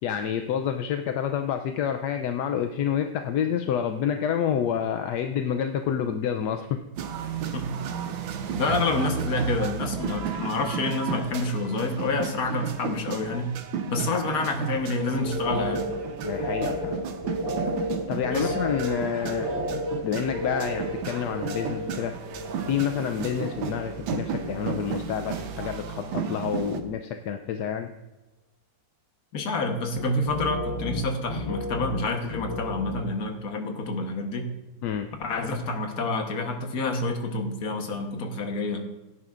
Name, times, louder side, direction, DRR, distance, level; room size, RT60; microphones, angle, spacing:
voice 1, 0.0-6.8 14.1-14.5 16.2-17.0 18.1-19.5 20.0-22.2 22.7-27.9 34.8-35.1, left 8 dB, 70° left, 6 dB, 1.0 m, -28 dB
sound 1, 7.0-26.8, right 7 dB, 90° right, 1.6 m, -34 dB
voice 2, 8.6-13.6 13.9-15.8 18.3-18.5 29.3-34.5 35.2-38.8, left 2 dB, 55° left, 4 dB, 1.5 m, -28 dB
sound 2, 15.1-24.0 24.2-24.9 25.2-25.9 26.3-26.7 30.0-33.1, left 1 dB, 15° left, 2.8 m, -33 dB
16.5 x 9.9 x 2.5 m, 1.0 s
omnidirectional pair, 2.1 m